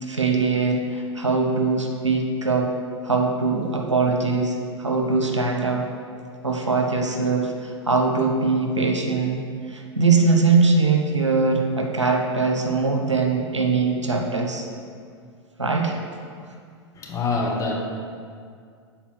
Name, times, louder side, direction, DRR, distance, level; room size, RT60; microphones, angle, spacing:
voice 1, 0.0-2.8 3.0-5.9 6.4-14.7 15.6-16.0, right 4 dB, 90° right, 2 dB, 0.9 m, -22 dB
voice 2, 16.9-17.7, left 3 dB, 20° left, -1 dB, 1.3 m, -25 dB
7.1 x 4.4 x 5.8 m, 2.2 s
figure-of-eight pair, 95°, 15 cm